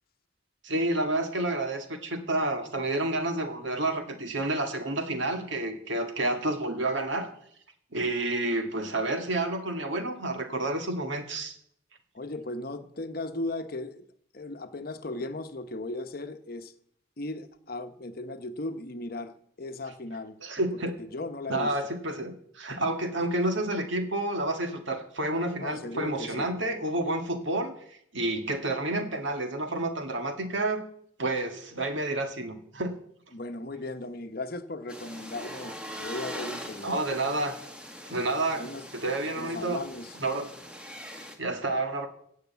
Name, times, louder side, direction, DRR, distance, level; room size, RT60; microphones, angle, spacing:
voice 1, 0.6-7.3 7.9-11.5 20.4-21.0 21.5-27.8 28.1-30.9 31.2-33.0 36.8-37.6 38.1-38.7 38.9-39.8 40.2-40.5 41.4-42.1, right 2 dB, 70° right, 2.0 m, -29 dB
voice 2, 12.1-14.1 14.3-16.7 17.2-20.4 21.0-21.7 25.6-26.5 33.3-36.9 38.6-38.9 39.4-40.1, left 2 dB, 45° left, 0.9 m, -37 dB
sound 1, 34.9-41.4, equal, 5° right, 1.3 m, -42 dB
16.5 x 6.6 x 8.2 m
head